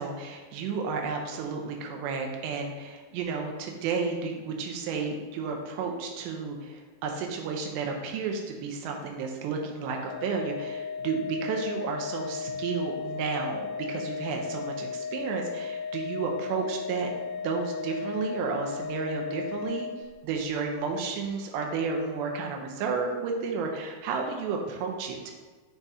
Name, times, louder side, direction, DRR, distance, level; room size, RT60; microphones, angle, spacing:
voice 1, 0.0-17.1 17.4-19.9 20.2-25.3, right 5 dB, 85° right, 2 dB, 2.9 m, -32 dB
Organ, 9.9-20.6, left 5 dB, 85° left, 2.6 m, -36 dB
6.8 x 4.1 x 3.6 m, 1.4 s
omnidirectional pair, 4.8 m